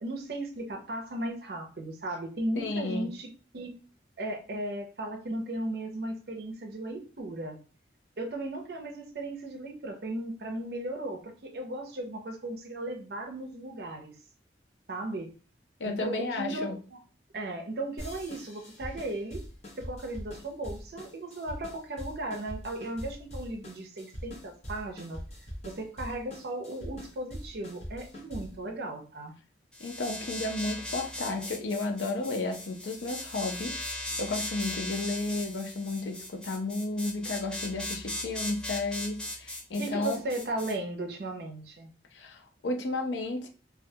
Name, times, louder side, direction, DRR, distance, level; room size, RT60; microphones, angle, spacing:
voice 1, 0.0-3.3 3.5-3.8 4.2-7.6 8.2-14.1 14.9-15.3 15.9-17.0 17.3-19.4 19.8-25.2 25.6-29.3 39.8-41.9, right 1 dB, 60° right, 4 dB, 0.5 m, -36 dB
voice 2, 2.6-3.1 15.8-16.8 29.8-40.2 42.1-43.5, left 2 dB, 85° left, 4 dB, 0.5 m, -33 dB
sound 1, 18.0-28.6, equal, 40° left, 0.7 m, -43 dB
sound 2, 29.7-40.7, left 1 dB, 5° left, 0.3 m, -38 dB
2.3 x 2.1 x 2.7 m, 0.37 s
head